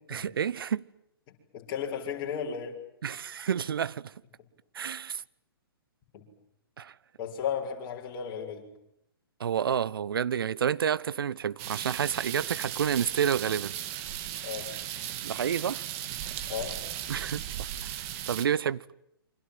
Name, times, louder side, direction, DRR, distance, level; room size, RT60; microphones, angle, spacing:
voice 1, 0.1-0.9 3.0-4.1 4.7-5.2 6.8-6.9 9.4-13.7 15.2-15.8 17.1-18.8, right 8 dB, 65° right, 1.1 m, -29 dB
voice 2, 1.3-2.8 6.1-6.2 7.2-8.7 14.4-14.7 16.5-16.8, left 7 dB, 35° left, 6.9 m, -34 dB
sound 1, 11.6-18.5, right 11 dB, 35° right, 2.9 m, -37 dB
29.0 x 25.5 x 7.8 m
figure-of-eight pair, 125°, 13 cm